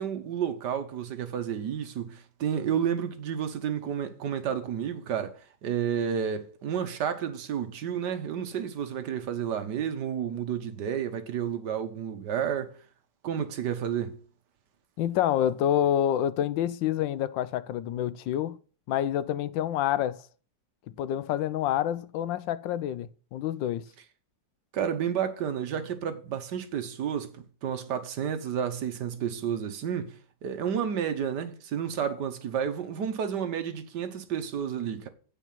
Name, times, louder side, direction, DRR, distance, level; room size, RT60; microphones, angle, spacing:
voice 1, 0.0-12.7 13.2-14.2 24.7-30.2 30.4-35.1, right 8 dB, 70° right, 1.6 m, -31 dB
voice 2, 15.0-18.6 18.9-20.2 21.0-23.9, left 11 dB, 90° left, 1.3 m, -27 dB
8.4 x 5.4 x 7.2 m
omnidirectional pair, 2.0 m